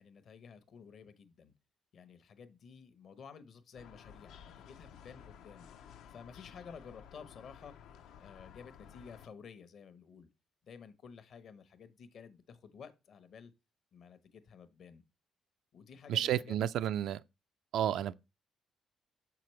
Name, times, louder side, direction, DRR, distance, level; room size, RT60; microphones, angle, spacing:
voice 1, 0.0-1.5 1.9-5.7 6.1-7.7 8.2-10.3 10.6-13.5 13.9-15.0 15.7-16.6, left 6 dB, 65° left, 0.9 m, -53 dB
sound 1, 3.8-9.3, left 8 dB, 85° left, 0.6 m, -54 dB
voice 2, 16.1-17.2 17.7-18.1, right 11 dB, 80° right, 0.3 m, -31 dB
6.8 x 5.8 x 3.2 m
cardioid pair, 90°, 0 cm